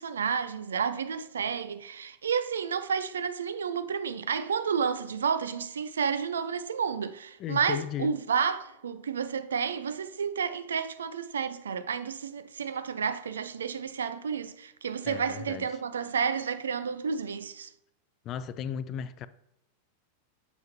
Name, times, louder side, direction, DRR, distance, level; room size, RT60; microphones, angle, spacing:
voice 1, 0.0-17.7, right 6 dB, 65° right, 0.4 m, -31 dB
voice 2, 7.4-8.2 15.0-15.7 18.2-19.3, left 9 dB, 35° left, 0.3 m, -35 dB
6.9 x 5.6 x 2.9 m
figure-of-eight pair, 90°, 0 cm